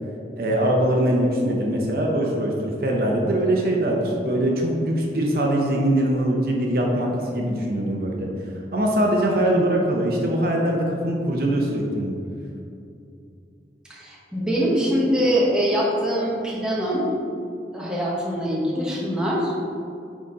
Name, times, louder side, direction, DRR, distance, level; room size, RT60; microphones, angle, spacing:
voice 1, 0.4-8.3 8.7-12.1, right 1 dB, 55° right, -1 dB, 0.9 m, -22 dB
voice 2, 9.4-9.8 13.9-17.0 17.7-19.5, equal, 5° right, -5 dB, 1.1 m, -23 dB
10.0 x 4.1 x 3.7 m, 2.6 s
head